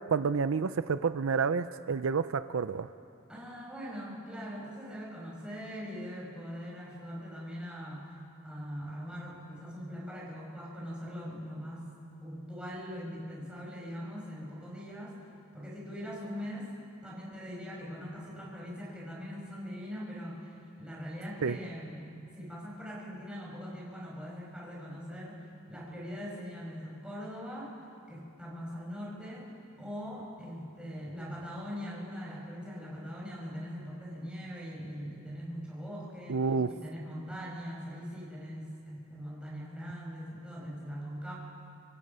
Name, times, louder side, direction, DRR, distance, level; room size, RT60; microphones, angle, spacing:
voice 1, 0.1-2.9 21.4-21.6 36.3-36.7, right 5 dB, 70° right, 12 dB, 0.5 m, -29 dB
voice 2, 3.3-8.1 8.4-11.9 12.2-15.2 15.5-16.7 17.0-22.0 22.3-27.7 28.1-41.3, equal, 5° right, -5 dB, 6.0 m, -41 dB
26.0 x 25.5 x 5.6 m, 2.5 s
head